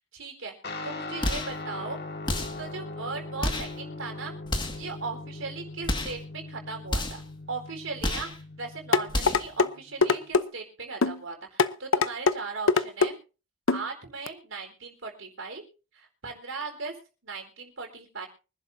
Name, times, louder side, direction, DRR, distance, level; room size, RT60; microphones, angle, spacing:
voice 1, 0.1-0.5 0.8-2.0 2.6-4.3 4.7-7.2 7.5-8.3 8.6-13.1 13.7-15.6 15.9-16.9 17.2-18.3, right 4 dB, 75° right, 3 dB, 4.4 m, -38 dB
Guitar, 0.6-10.3, left 2 dB, 50° left, 2.0 m, -40 dB
sound 1, 1.2-1.6 2.3-2.7 3.4-3.8 4.5-4.9 5.8-6.2 6.9-7.3 8.0-8.4 9.1-9.5, left 1 dB, 20° left, 1.9 m, -30 dB
sound 2, 8.9-9.7 10.0-10.4 11.0-11.2 11.6-12.4 12.7-13.1 13.7-13.8 14.3-14.4, left 4 dB, 75° left, 0.8 m, -22 dB
25.0 x 11.0 x 2.7 m, 0.34 s
head